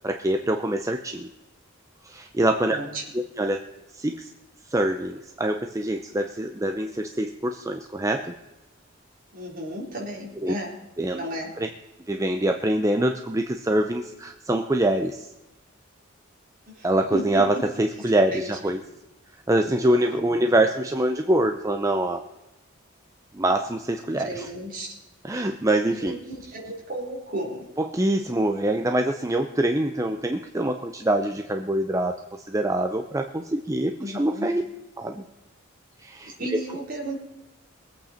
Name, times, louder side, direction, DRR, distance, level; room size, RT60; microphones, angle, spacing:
voice 1, 0.0-1.3 2.0-2.8 3.1-3.6 3.9-4.3 4.7-8.3 10.4-10.5 11.0-11.2 11.6-11.7 12.1-15.3 16.8-18.8 19.5-22.3 23.3-24.5 25.2-26.2 27.8-34.6 35.0-35.2 36.0-36.6, right 1 dB, 15° right, 5 dB, 0.6 m, -25 dB
voice 2, 2.7-3.0 9.3-10.8 11.1-11.5 16.7-17.4 18.0-18.5 19.8-20.5 24.2-24.9 25.9-27.7 34.0-34.5 36.2-37.2, right 1 dB, 45° right, -2 dB, 3.8 m, -34 dB
22.0 x 8.6 x 4.4 m, 1.0 s
head